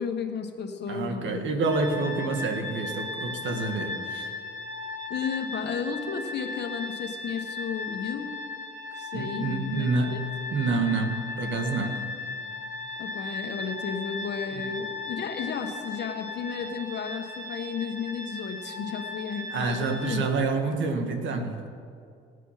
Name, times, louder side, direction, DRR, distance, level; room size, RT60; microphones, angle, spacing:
voice 1, 0.0-1.5 5.1-8.3 8.9-10.2 13.0-20.3, left 6 dB, 60° left, 5 dB, 1.4 m, -33 dB
voice 2, 0.9-4.3 9.1-10.2 10.5-12.1 14.5-14.6 19.5-21.7, right 3 dB, 70° right, 5 dB, 1.6 m, -28 dB
sound 1, 1.6-20.2, left 3 dB, 20° right, 2.3 m, -37 dB
17.5 x 8.2 x 5.7 m, 2.3 s
cardioid pair, 90°, 20 cm